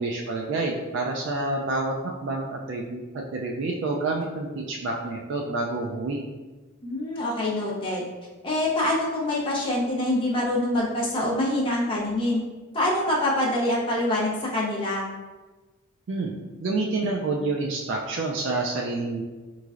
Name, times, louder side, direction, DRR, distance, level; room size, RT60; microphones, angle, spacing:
voice 1, 0.0-6.2 16.1-16.3 16.6-19.2, right 2 dB, 55° right, -1 dB, 0.3 m, -28 dB
voice 2, 6.8-8.0 8.4-12.4 12.7-15.1, left 1 dB, 25° left, -5 dB, 0.5 m, -25 dB
3.6 x 3.1 x 2.4 m, 1.2 s
head